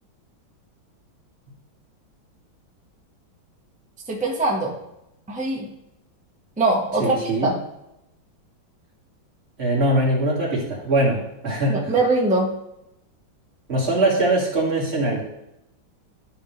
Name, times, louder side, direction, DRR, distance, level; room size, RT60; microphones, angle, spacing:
voice 1, 4.1-4.8 5.3-5.7 6.6-7.6 11.7-12.5, right 2 dB, 5° right, -2 dB, 1.1 m, -22 dB
voice 2, 7.0-7.5 9.6-11.9 13.7-15.2, right 1 dB, 30° right, -5 dB, 2.6 m, -22 dB
12.0 x 4.8 x 3.4 m, 0.85 s
omnidirectional pair, 2.2 m